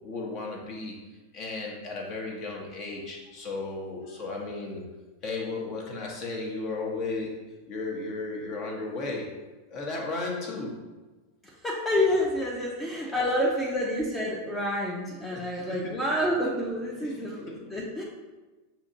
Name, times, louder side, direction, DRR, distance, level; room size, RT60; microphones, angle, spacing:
voice 1, 0.0-1.0 1.3-4.8 5.2-9.3 9.7-10.8 13.0-13.3 15.3-16.0 17.0-17.8, left 3 dB, 40° left, -1 dB, 0.9 m, -35 dB
voice 2, 11.4-18.0, left 1 dB, 10° left, -3 dB, 0.7 m, -28 dB
6.9 x 2.8 x 2.6 m, 1.2 s
figure-of-eight pair, 90°, 0 cm